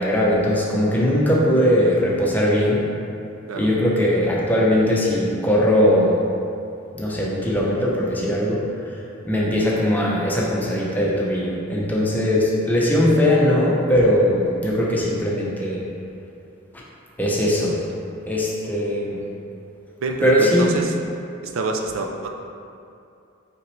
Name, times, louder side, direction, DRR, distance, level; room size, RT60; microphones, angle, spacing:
voice 1, 0.0-2.9 3.5-6.2 6.9-8.8 9.2-15.8 17.2-17.8 18.3-19.2 20.2-20.8, equal, 10° left, -5 dB, 0.7 m, -20 dB
voice 2, 20.0-21.0 21.4-22.3, right 2 dB, 80° right, 3 dB, 0.5 m, -26 dB
5.7 x 5.1 x 3.2 m, 2.6 s
head